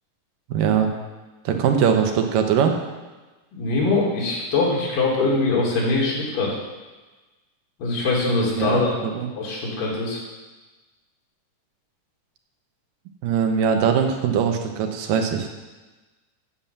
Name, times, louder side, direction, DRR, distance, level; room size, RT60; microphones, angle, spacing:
voice 1, 0.5-0.9 1.5-2.8 8.6-9.3 13.2-15.5, right 7 dB, 90° right, 4 dB, 2.6 m, -21 dB
voice 2, 3.5-6.6 7.8-8.9 9.4-10.2, left 3 dB, 85° left, -4 dB, 4.1 m, -22 dB
8.9 x 7.3 x 6.8 m, 1.2 s
omnidirectional pair, 3.7 m